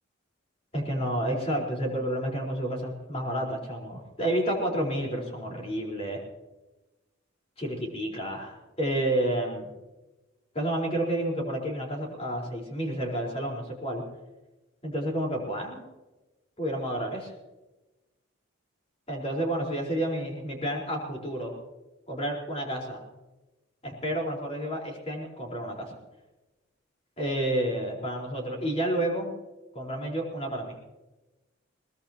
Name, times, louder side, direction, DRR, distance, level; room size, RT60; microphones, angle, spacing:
voice 1, 0.7-6.2 7.6-9.7 10.5-14.0 14.8-15.8 16.6-17.3 19.1-21.6 22.1-23.0 23.8-25.9 27.2-29.3 29.7-30.7, right 1 dB, 30° left, -1 dB, 4.4 m, -30 dB
22.0 x 19.5 x 3.0 m, 1.1 s
head